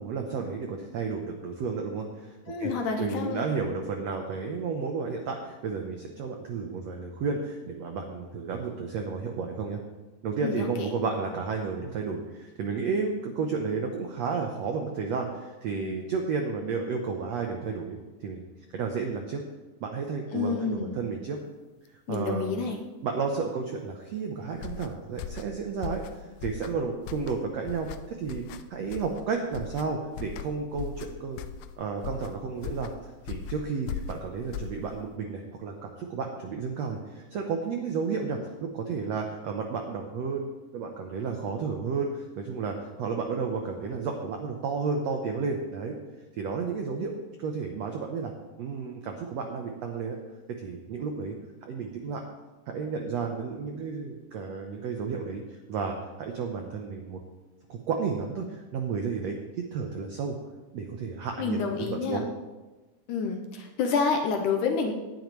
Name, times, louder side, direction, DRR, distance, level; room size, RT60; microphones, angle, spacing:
voice 1, 0.0-2.7 3.0-9.8 10.2-18.4 18.7-19.4 19.8-21.4 22.1-22.7 23.0-28.4 28.7-31.4 31.8-32.9 33.3-46.0 46.4-48.3 48.6-50.2 50.6-51.4 51.6-52.2 52.7-57.2 57.7-60.3 60.7-62.3, right 5 dB, 80° right, 3 dB, 1.5 m, -32 dB
voice 2, 2.5-3.5 10.4-10.7 20.3-21.0 22.1-22.8 61.4-62.3 63.1-64.9, left 5 dB, 70° left, 3 dB, 2.1 m, -28 dB
sound 1, 24.5-35.2, left 8 dB, 90° left, 2.5 m, -39 dB
18.0 x 10.5 x 3.2 m, 1.2 s
omnidirectional pair, 4.3 m